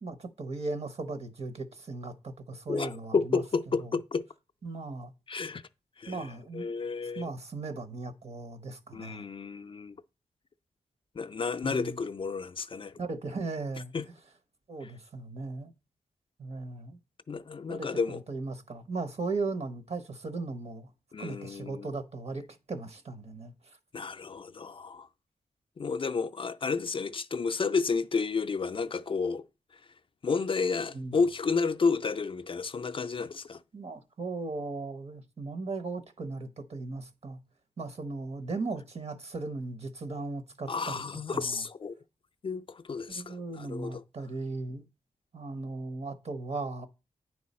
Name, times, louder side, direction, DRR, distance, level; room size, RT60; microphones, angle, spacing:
voice 1, 0.0-3.4 3.8-3.9 4.6-5.1 6.1-6.7 7.2-9.3 11.6-12.0 13.0-13.9 14.7-15.7 16.4-17.0 17.7-20.9 21.2-23.8 30.9-31.1 33.7-37.4 37.8-41.0 41.3-41.6 43.1-44.8 45.3-46.9, right 3 dB, 50° right, 1.0 m, -37 dB
voice 2, 2.7-4.3 5.3-5.6 6.0-7.3 8.9-10.0 11.2-13.0 13.9-14.1 14.8-14.9 17.3-18.2 21.1-21.9 23.9-25.1 25.8-29.5 30.2-33.6 40.7-42.0 42.4-44.0, left 4 dB, 40° left, 0.4 m, -31 dB
9.4 x 4.6 x 4.2 m
wide cardioid pair, 100°, 14 cm